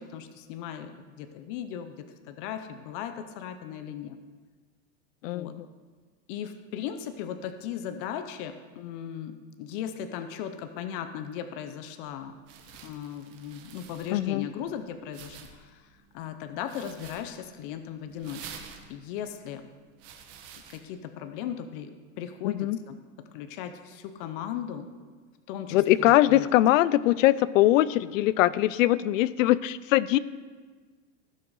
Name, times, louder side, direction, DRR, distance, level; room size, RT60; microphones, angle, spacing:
voice 1, 0.0-4.2 5.2-5.5 6.3-12.3 12.8-15.9 16.1-18.5 18.9-19.7 20.7-23.0 23.3-24.9 25.5-26.5, left 9 dB, 45° left, 8 dB, 0.6 m, -37 dB
voice 2, 5.2-5.7 14.1-14.5 22.4-22.8 25.7-30.2, left 15 dB, 85° left, 18 dB, 0.5 m, -22 dB
sound 1, 12.0-20.8, right 7 dB, 40° right, 1.2 m, -49 dB
15.5 x 6.3 x 4.7 m, 1.4 s
supercardioid pair, 165°, 38 cm